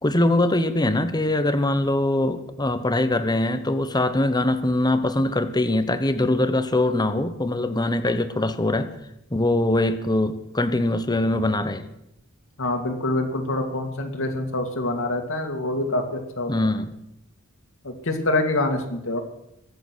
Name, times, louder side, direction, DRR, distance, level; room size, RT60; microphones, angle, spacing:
voice 1, 0.0-8.9 9.3-11.9 16.5-16.9, left 1 dB, 20° left, 10 dB, 1.1 m, -22 dB
voice 2, 12.6-16.7 17.8-19.2, left 2 dB, 65° left, 5 dB, 2.3 m, -26 dB
22.5 x 8.0 x 6.3 m, 0.82 s
head